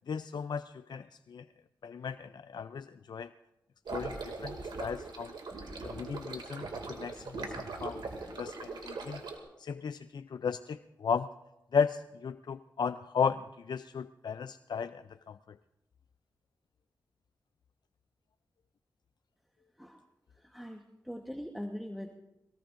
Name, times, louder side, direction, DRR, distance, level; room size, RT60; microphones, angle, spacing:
voice 1, 0.1-1.5 1.8-3.3 3.9-5.3 5.8-8.0 8.4-9.2 9.6-11.3 11.7-15.6, left 6 dB, 70° left, 11 dB, 0.4 m, -35 dB
sound 1, 3.9-9.4, right 3 dB, 85° right, 2.3 m, -40 dB
voice 2, 20.4-22.1, equal, ahead, 3 dB, 1.1 m, -42 dB
23.0 x 18.5 x 2.6 m, 0.93 s
cardioid pair, 50°, 8 cm